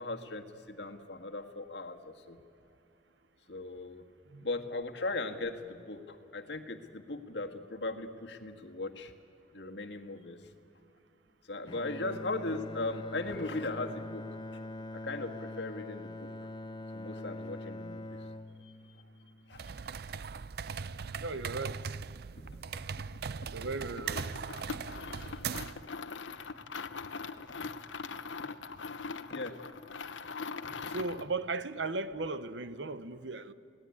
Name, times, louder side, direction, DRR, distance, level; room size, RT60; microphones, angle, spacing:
voice 1, 0.0-2.4 3.5-4.0 4.4-9.1 9.5-10.4 11.5-14.3 14.5-14.6 14.9-16.3 16.9-18.2 18.6-18.7 19.5-19.6 22.4-22.5 25.0-25.4 28.4-28.5 29.3-29.6 30.6-30.8, left 2 dB, 65° left, 1.7 m, -38 dB
Bowed string instrument, 11.7-19.9, left 2 dB, 25° left, 0.6 m, -43 dB
sound 1, 19.5-25.9, right 6 dB, 55° right, 0.5 m, -39 dB
voice 2, 21.2-21.8 23.5-24.3 30.9-33.5, right 3 dB, 75° right, 0.9 m, -36 dB
sound 2, 24.0-31.3, left 4 dB, 85° left, 1.0 m, -41 dB
27.0 x 18.0 x 9.6 m
head